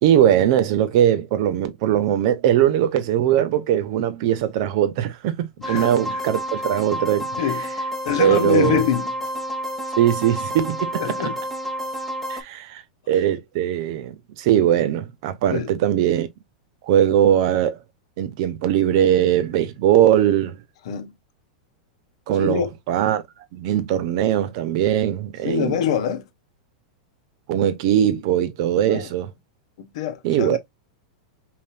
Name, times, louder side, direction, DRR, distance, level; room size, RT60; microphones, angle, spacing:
voice 1, 0.0-7.3 7.6-7.7 8.2-8.8 10.0-11.0 12.3-12.8 13.1-16.3 16.8-17.8 18.2-20.6 22.3-23.2 23.5-25.8 27.5-29.3 30.2-30.6, right 11 dB, 55° right, 0.9 m, -20 dB
voice 2, 5.6-6.2 7.4-7.6 8.0-9.1 11.0-11.4 15.5-15.7 20.9-21.1 22.4-22.7 25.4-26.2 28.8-29.1 29.9-30.6, left 9 dB, 65° left, 1.0 m, -24 dB
sound 1, 5.6-12.4, equal, 5° left, 1.1 m, -29 dB
5.5 x 2.5 x 2.5 m
hypercardioid pair, 120°, 3 cm